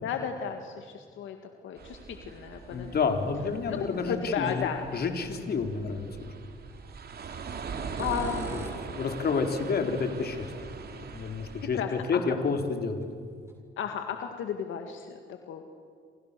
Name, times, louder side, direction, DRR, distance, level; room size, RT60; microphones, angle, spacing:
voice 1, 0.0-1.4 1.6-2.9 3.7-4.8 8.0-8.5 11.7-12.2 13.8-15.7, left 7 dB, 80° left, 5 dB, 2.0 m, -34 dB
sound 1, 1.8-11.7, right 5 dB, 55° right, 3.1 m, -41 dB
voice 2, 2.7-6.3 8.5-8.6 8.9-13.1, left 5 dB, 55° left, 5 dB, 3.8 m, -30 dB
sound 2, 6.7-6.9 7.8-9.0 11.7-11.8 12.5-12.6 13.0-13.1 13.5-13.6, right 1 dB, 15° right, 7.1 m, -42 dB
28.5 x 27.5 x 6.9 m, 2.2 s
cardioid pair, 90°, 20 cm